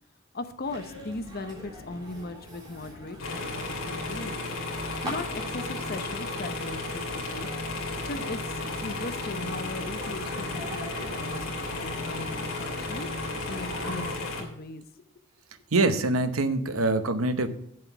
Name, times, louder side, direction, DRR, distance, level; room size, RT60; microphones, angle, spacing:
voice 1, 0.3-4.5 5.0-7.5 8.0-13.1 13.5-15.1, left 2 dB, 45° left, 9 dB, 0.8 m, -38 dB
sound 1, 0.6-14.1, equal, 20° right, 3.5 m, -42 dB
sound 2, 3.2-14.4, left 2 dB, 75° left, 2.5 m, -34 dB
voice 2, 15.7-17.5, right 2 dB, 80° right, 10 dB, 0.9 m, -24 dB
8.1 x 7.6 x 5.8 m, 0.73 s
head